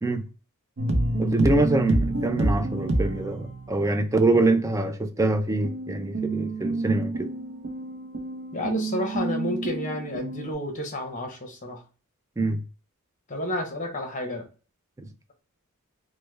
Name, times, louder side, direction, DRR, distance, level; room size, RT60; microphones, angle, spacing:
sound 1, 0.8-3.9 5.6-10.5, right 2 dB, 55° right, 0.6 m, -28 dB
voice 1, 1.2-7.3 12.4-12.6, right 2 dB, 15° right, 0.4 m, -24 dB
voice 2, 8.5-11.8 13.3-14.4, left 1 dB, 35° left, 0.9 m, -30 dB
3.2 x 2.2 x 3.2 m
head